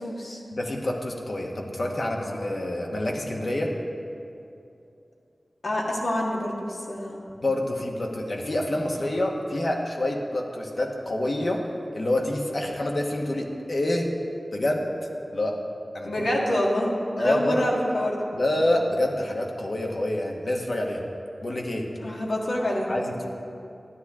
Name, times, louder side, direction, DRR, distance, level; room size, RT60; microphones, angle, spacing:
voice 1, 0.0-0.4 5.6-7.2 16.0-18.3 22.0-22.9, left 1 dB, 80° left, -2 dB, 1.6 m, -27 dB
voice 2, 0.5-3.7 7.4-11.7 11.9-14.1 14.5-14.9 15.3-15.6 15.9-16.3 17.2-17.6 18.3-21.0 21.4-21.9 22.9-23.3, left 1 dB, 60° left, 0 dB, 1.2 m, -27 dB
12.5 x 10.0 x 3.6 m, 2.6 s
wide cardioid pair, 70°, 0 cm